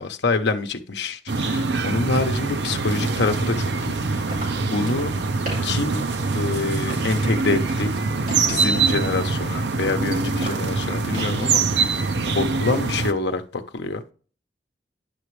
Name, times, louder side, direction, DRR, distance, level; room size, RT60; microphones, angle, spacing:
voice 1, 0.0-3.6 3.9-4.2 4.7-5.1 5.6-6.0 6.3-7.9 8.5-14.1, left 3 dB, 70° left, 0.8 m, -26 dB
sound 1, 1.3-13.1, right 4 dB, 70° right, 0.7 m, -24 dB
sound 2, 4.1-11.5, right 1 dB, 50° right, 4.6 m, -41 dB
10.0 x 6.0 x 3.2 m
head